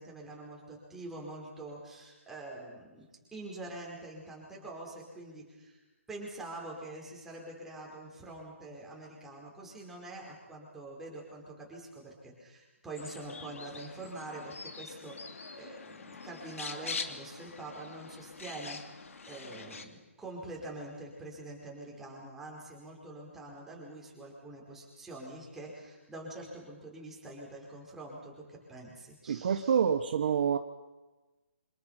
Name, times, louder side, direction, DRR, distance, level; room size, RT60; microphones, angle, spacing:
voice 1, 0.0-3.0 3.3-5.8 6.1-19.0 19.2-29.8, right 2 dB, 5° right, -3 dB, 5.3 m, -45 dB
sound 1, 13.0-19.9, left 4 dB, 75° left, 2.7 m, -44 dB
voice 2, 29.3-30.6, right 7 dB, 45° right, 8 dB, 1.2 m, -27 dB
28.5 x 27.0 x 5.9 m, 1.1 s
hypercardioid pair, 165°, 7 cm